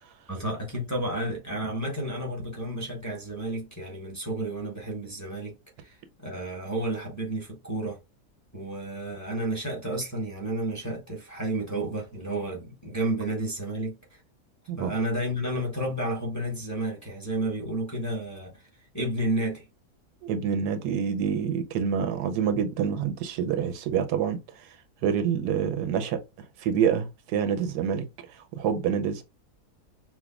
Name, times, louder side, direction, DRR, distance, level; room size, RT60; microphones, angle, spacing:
voice 1, 0.3-5.5 5.8-6.0 6.2-8.0 8.5-14.2 14.8-18.6 18.9-19.6, right 1 dB, 15° left, 0.9 m, -31 dB
voice 2, 20.2-24.4 25.0-26.2 26.6-28.1 28.5-29.2, right 7 dB, 90° right, 1.2 m, -27 dB
5.9 x 2.1 x 2.3 m
omnidirectional pair, 1.7 m